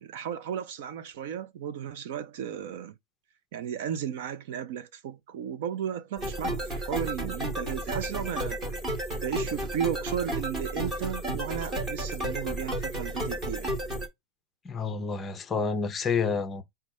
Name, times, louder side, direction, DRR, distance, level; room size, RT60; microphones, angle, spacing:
voice 1, 0.0-2.9 3.5-8.6 9.2-13.8, right 9 dB, 55° right, 0.5 m, -34 dB
sound 1, 6.2-14.1, right 1 dB, 15° right, 1.1 m, -32 dB
voice 2, 14.6-16.6, left 5 dB, 15° left, 0.6 m, -29 dB
4.9 x 2.2 x 4.1 m
supercardioid pair, 175°, 0 cm